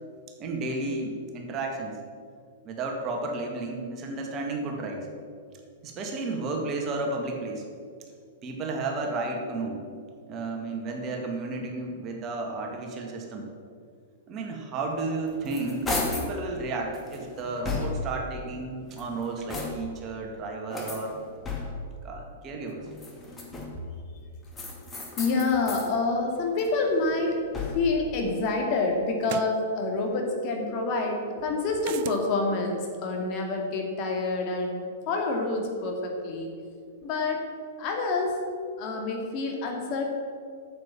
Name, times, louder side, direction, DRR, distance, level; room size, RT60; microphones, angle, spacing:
voice 1, 0.4-2.0 2.6-5.1 5.8-7.6 8.4-10.0 10.3-13.4 14.3-21.1 22.0-22.8, right 3 dB, 35° right, 1 dB, 2.0 m, -32 dB
sound 1, 15.0-16.4 16.9-18.2 18.8-20.0 20.7-22.0 22.9-23.9 24.5-25.9 26.3-28.0, left 3 dB, 15° left, 2.3 m, -35 dB
voice 2, 25.2-36.5 37.0-37.4 37.8-38.4 38.8-40.0, left 3 dB, 45° left, 1 dB, 2.4 m, -27 dB
sound 2, 27.9-28.0 29.2-29.6 31.8-32.2, right 15 dB, 50° right, 0.4 m, -36 dB
9.0 x 7.6 x 7.5 m, 2.2 s
hypercardioid pair, 105°, 0 cm